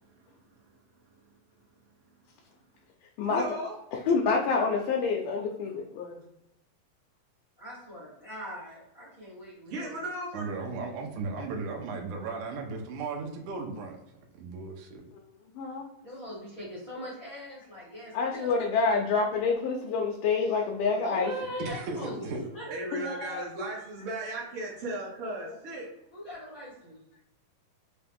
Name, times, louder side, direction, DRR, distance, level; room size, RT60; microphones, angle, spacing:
voice 1, 3.2-3.7 9.6-10.5 22.7-25.9, right 1 dB, 60° right, -7 dB, 1.6 m, -36 dB
voice 2, 4.1-6.2 15.6-15.9 18.1-21.3 22.9-23.0, left 4 dB, 80° left, 0 dB, 2.1 m, -27 dB
voice 3, 7.6-10.0 16.0-18.5 21.0-23.5 26.1-27.0, equal, 45° left, -7 dB, 1.0 m, -41 dB
voice 4, 10.3-14.0 14.3-15.0 21.6-22.4, right 4 dB, 75° right, 1 dB, 1.9 m, -36 dB
5.6 x 2.3 x 3.4 m, 0.86 s
omnidirectional pair, 4.0 m